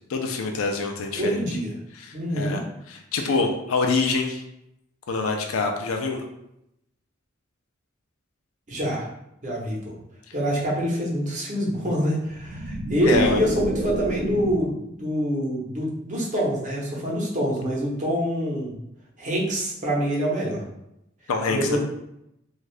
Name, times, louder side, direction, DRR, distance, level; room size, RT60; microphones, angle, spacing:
voice 1, 0.1-1.4 1.9-2.6 2.9-4.4 5.1-6.2 13.1-13.4 21.3-21.8, left 4 dB, 85° left, 3 dB, 0.4 m, -25 dB
voice 2, 1.2-1.7 2.1-2.6 8.7-9.1 9.4-9.9 10.3-18.7 19.2-20.6 21.5-21.8, equal, 40° right, -4 dB, 0.8 m, -25 dB
sound 1, 12.2-14.8, right 1 dB, 60° right, 0.5 m, -30 dB
2.6 x 2.4 x 3.2 m, 0.82 s
head